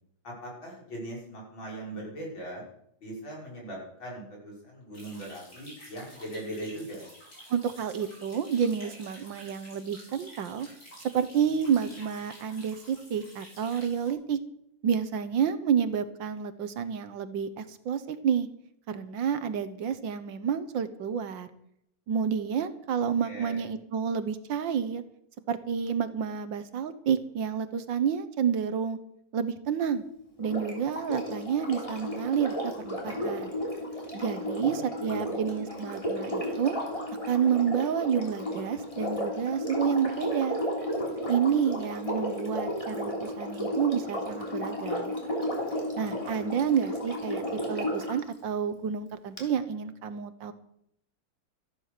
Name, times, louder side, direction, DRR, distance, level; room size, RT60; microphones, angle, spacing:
voice 1, 0.2-2.6 3.0-7.0 23.2-23.6 34.6-35.4 46.1-46.6, right 1 dB, 85° left, -3 dB, 7.0 m, -40 dB
sound 1, 4.9-14.1, equal, 50° left, 5.9 m, -50 dB
voice 2, 7.5-10.7 11.1-14.4 14.8-18.5 18.9-21.5 22.1-25.0 25.5-29.0 29.3-30.0 30.4-33.5 34.1-36.8 37.3-40.6 41.3-45.1 46.0-50.5, right 7 dB, 70° right, 12 dB, 1.7 m, -29 dB
Sink (filling or washing), 30.4-48.2 49.4-49.5, equal, 15° left, 3.5 m, -33 dB
14.0 x 11.0 x 6.7 m, 0.74 s
omnidirectional pair, 2.1 m